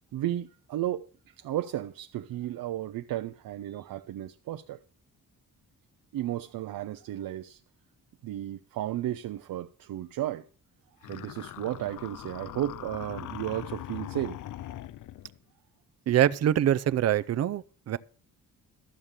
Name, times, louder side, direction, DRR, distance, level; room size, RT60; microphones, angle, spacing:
voice 1, 0.1-4.8 6.1-7.6 8.2-10.4 11.1-14.4, right 13 dB, 90° right, 0.6 m, -34 dB
sound 1, 11.0-15.4, left 13 dB, 65° left, 0.5 m, -41 dB
voice 2, 16.1-18.0, right 11 dB, 50° right, 0.5 m, -24 dB
12.5 x 7.4 x 6.5 m
wide cardioid pair, 145°, 34 cm